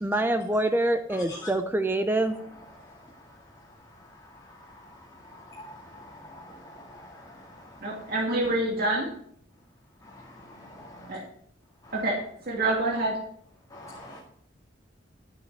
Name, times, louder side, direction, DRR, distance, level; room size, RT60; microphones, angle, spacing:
voice 1, 0.0-2.4, right 1 dB, 10° right, 8 dB, 0.6 m, -25 dB
voice 2, 5.3-7.3 10.1-11.2 13.7-14.2, left 1 dB, 20° left, -3 dB, 2.3 m, -46 dB
voice 3, 7.8-9.1 11.1-11.2 11.9-12.2 12.5-13.2, right 2 dB, 50° right, -2 dB, 2.4 m, -26 dB
12.0 x 9.2 x 4.7 m, 0.65 s
head